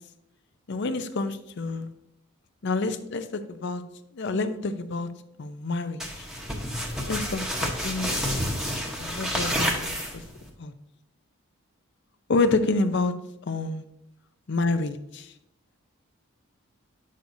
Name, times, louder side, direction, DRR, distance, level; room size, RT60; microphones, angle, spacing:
voice 1, 0.7-1.9 2.6-3.8 4.1-5.1 5.4-6.3 7.1-8.2 8.9-10.2 10.6-10.7 12.3-13.2 13.5-13.8 14.5-15.3, left 3 dB, 50° left, 10 dB, 0.5 m, -28 dB
sound 1, 6.0-10.5, equal, 5° right, 0.9 m, -29 dB
8.2 x 6.3 x 2.7 m, 0.85 s
head